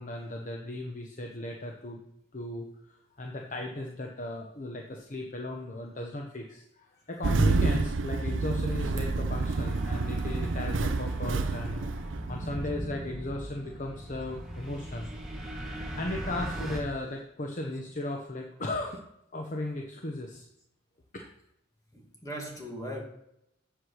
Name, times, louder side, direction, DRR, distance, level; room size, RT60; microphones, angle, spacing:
voice 1, 0.0-2.0 2.3-2.7 3.2-11.9 12.3-15.1 15.9-19.0 19.3-20.5 21.1-21.3, left 1 dB, 40° left, 1.0 m, -36 dB
Engine starting, 7.2-12.8, right 3 dB, 65° right, 0.7 m, -29 dB
sound 1, 9.3-16.8, right 1 dB, 5° right, 1.8 m, -39 dB
voice 2, 21.9-23.0, equal, 15° left, 2.4 m, -38 dB
8.0 x 8.0 x 6.4 m
head